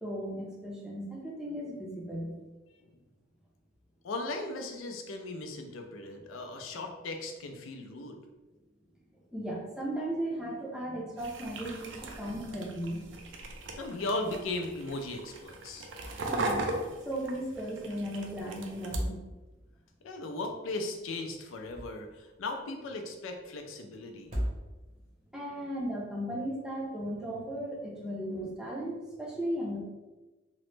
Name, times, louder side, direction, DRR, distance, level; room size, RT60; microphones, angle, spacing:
voice 1, 0.0-2.3 9.3-13.1 16.1-16.6 17.1-19.2 25.3-29.8, right 1 dB, 5° right, -4 dB, 0.5 m, -36 dB
voice 2, 4.0-8.2 13.8-15.9 20.0-24.3, left 2 dB, 85° left, 4 dB, 0.4 m, -37 dB
sound 1, 11.2-19.0, right 2 dB, 65° right, 0.4 m, -39 dB
sound 2, 15.9-16.4 16.7-16.8 18.7-19.7 21.4-22.3 24.1-25.1, equal, 35° right, 0.8 m, -37 dB
3.0 x 2.0 x 3.1 m, 1.2 s
head